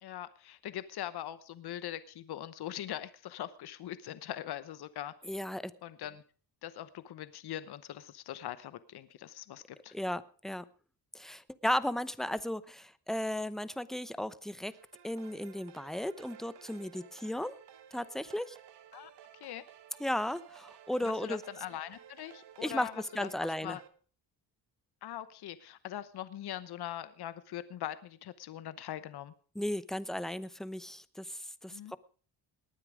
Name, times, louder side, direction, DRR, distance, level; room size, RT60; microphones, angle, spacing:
voice 1, 0.0-5.1 5.8-6.2 6.6-9.9 18.9-19.1 19.4-19.6 21.0-23.3 23.6-23.8 25.0-29.3 31.7-31.9, left 12 dB, 65° left, 14 dB, 1.0 m, -42 dB
voice 2, 5.2-5.7 9.9-10.6 11.1-14.7 15.0-17.6 17.9-18.6 20.0-21.4 22.6-22.9 23.1-23.8 29.5-32.0, left 1 dB, ahead, 15 dB, 0.8 m, -35 dB
sound 1, 14.7-23.9, right 9 dB, 80° right, 1.4 m, -55 dB
19.0 x 9.8 x 5.0 m, 0.41 s
cardioid pair, 85°, 41 cm